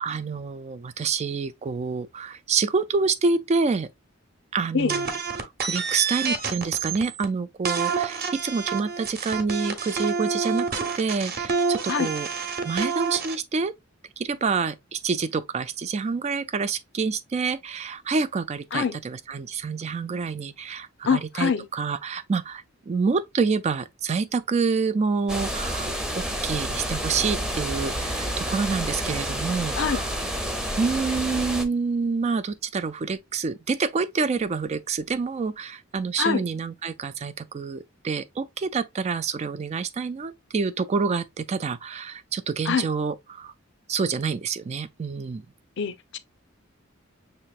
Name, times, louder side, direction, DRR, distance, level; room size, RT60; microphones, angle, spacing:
voice 1, 0.0-3.9 4.5-5.1 5.3-12.3 12.6-13.7 14.2-30.1 30.8-43.5 43.9-45.4, right 5 dB, 30° right, 0.3 m, -27 dB
sound 1, 4.9-7.3 7.7-13.4, right 5 dB, 50° right, 1.0 m, -28 dB
voice 2, 21.1-21.7 29.8-30.0 36.2-36.4 42.7-42.9 45.8-46.2, left 6 dB, 60° left, 0.6 m, -24 dB
sound 2, 25.3-31.6, equal, 5° right, 0.7 m, -29 dB
6.5 x 3.0 x 2.4 m
head